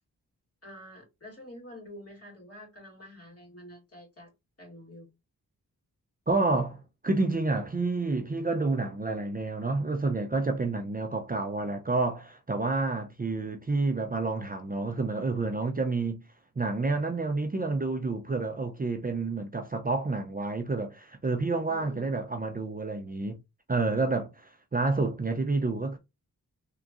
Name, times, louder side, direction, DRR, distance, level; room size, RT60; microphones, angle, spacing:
voice 1, 0.6-4.3 4.6-5.1 21.7-22.3, left 1 dB, 40° left, 2.3 m, -48 dB
voice 2, 6.3-16.2 16.6-23.4 23.7-26.0, right 3 dB, 25° right, 0.5 m, -29 dB
3.5 x 2.9 x 2.5 m
cardioid pair, 55°, 36 cm